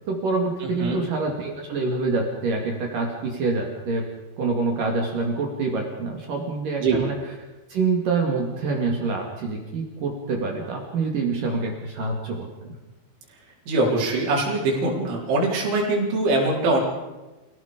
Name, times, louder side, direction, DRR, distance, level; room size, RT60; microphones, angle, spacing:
voice 1, 0.1-4.1 4.4-7.2 7.7-12.8, right 3 dB, 50° right, 1 dB, 3.5 m, -26 dB
voice 2, 0.6-1.0 6.8-7.0 13.7-16.8, right 2 dB, 80° right, -3 dB, 6.6 m, -23 dB
28.0 x 18.0 x 5.2 m, 1.1 s
omnidirectional pair, 5.4 m